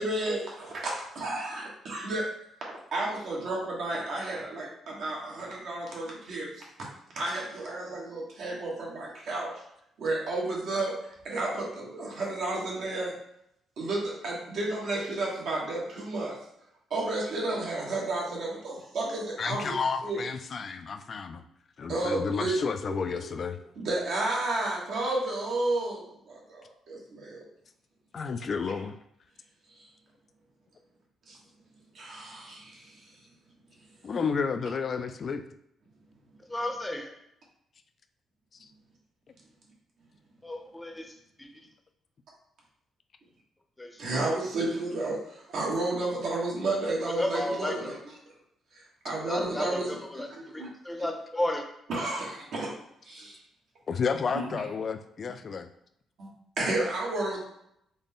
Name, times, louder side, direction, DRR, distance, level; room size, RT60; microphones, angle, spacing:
voice 1, 0.0-2.3 2.9-6.5 7.1-9.6 10.0-13.2 13.8-16.4 16.9-19.8 20.0-20.2 21.9-23.2 23.8-27.4 31.3-31.4 31.9-33.0 44.0-48.0 48.7-50.7 51.9-52.8 53.0-53.4 54.3-54.4 56.2-56.3 56.6-57.4, right 2 dB, 70° right, -3 dB, 1.2 m, -32 dB
voice 2, 19.4-21.4 21.8-23.6 28.1-29.0 34.0-35.4 38.6-38.7 53.9-55.7, left 5 dB, 45° left, 8 dB, 0.3 m, -31 dB
voice 3, 36.5-37.2 40.4-41.5 43.8-44.0 47.2-48.0 49.2-50.3 50.5-51.6, left 1 dB, 10° left, 3 dB, 0.6 m, -33 dB
3.9 x 2.2 x 3.5 m, 0.74 s
cardioid pair, 90°, 0 cm